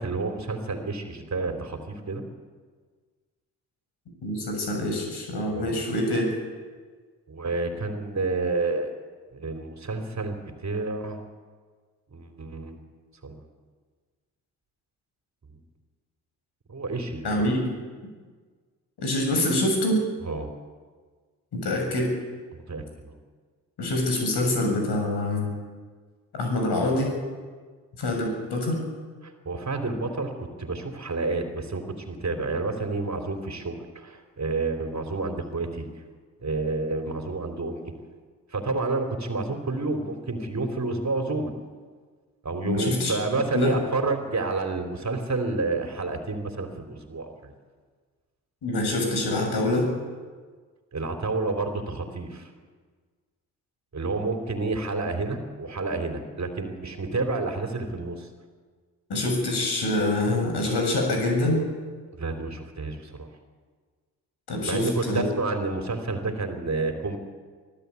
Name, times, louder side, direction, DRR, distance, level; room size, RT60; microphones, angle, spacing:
voice 1, 0.0-2.2 5.5-5.8 7.3-9.0 9.3-11.2 12.1-12.8 13.2-13.4 16.7-17.5 20.2-20.5 22.5-23.2 29.2-35.9 36.4-37.9 38.5-41.5 42.4-47.5 50.9-52.5 53.9-58.3 62.1-63.3 64.6-67.2, right 3 dB, 40° right, 5 dB, 3.6 m, -29 dB
voice 2, 4.2-6.3 17.2-17.6 19.0-20.0 21.5-22.1 23.8-25.5 26.3-27.2 28.0-28.8 42.6-43.1 43.5-43.8 48.6-49.9 59.1-61.6 64.5-65.3, left 1 dB, 60° left, 2 dB, 7.2 m, -25 dB
24.0 x 14.0 x 8.4 m, 1.5 s
hypercardioid pair, 45°, 43 cm